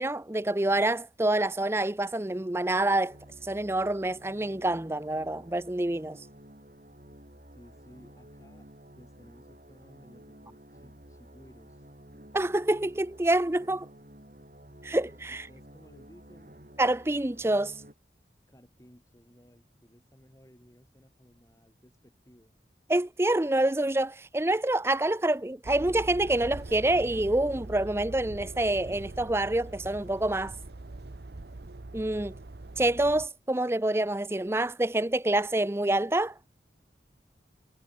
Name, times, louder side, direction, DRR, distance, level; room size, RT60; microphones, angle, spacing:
voice 1, 0.0-3.2 3.4-6.2 12.3-13.9 14.8-15.4 16.8-17.7 22.9-30.5 31.9-32.3 32.8-36.3, right 1 dB, 15° right, 0.5 m, -27 dB
sound 1, 3.1-17.9, right 1 dB, 45° right, 4.7 m, -52 dB
voice 2, 7.5-11.9 15.3-16.5 18.5-22.6, equal, 20° left, 5.5 m, -57 dB
sound 2, 25.6-33.3, right 2 dB, 70° right, 0.9 m, -42 dB
head